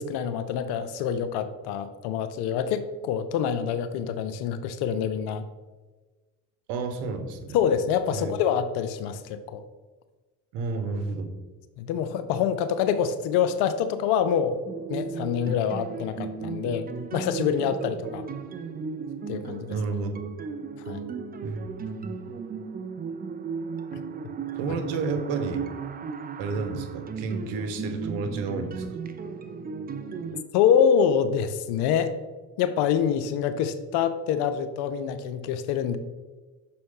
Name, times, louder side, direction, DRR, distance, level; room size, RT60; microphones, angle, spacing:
voice 1, 0.0-5.4 7.5-9.6 11.8-14.6 14.9-16.8 17.1-18.2 19.3-19.8 20.9-21.0 30.5-32.1 32.6-36.0, left 8 dB, 70° left, 11 dB, 0.6 m, -26 dB
voice 2, 6.7-7.6 8.1-8.4 10.5-11.3 19.7-20.2 21.4-21.7 22.0-22.2 24.6-25.6 26.4-28.9, right 4 dB, 75° right, 7 dB, 1.0 m, -31 dB
sound 1, 14.6-30.4, right 5 dB, 20° right, 0.5 m, -35 dB
6.2 x 4.3 x 3.7 m, 1.2 s
hypercardioid pair, 70°, 42 cm